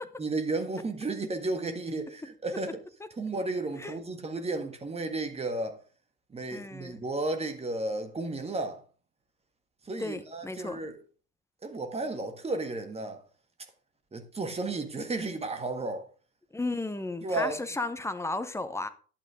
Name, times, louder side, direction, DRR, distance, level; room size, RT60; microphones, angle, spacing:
voice 1, 0.2-2.8 3.2-5.8 6.3-8.8 9.8-11.0 11.6-13.2 14.1-16.1 17.2-17.6, right 2 dB, 15° right, 1.6 m, -33 dB
voice 2, 6.5-7.0 10.0-10.8 16.5-18.9, left 2 dB, 5° left, 0.8 m, -34 dB
10.5 x 8.7 x 3.6 m
figure-of-eight pair, 80°, 45 cm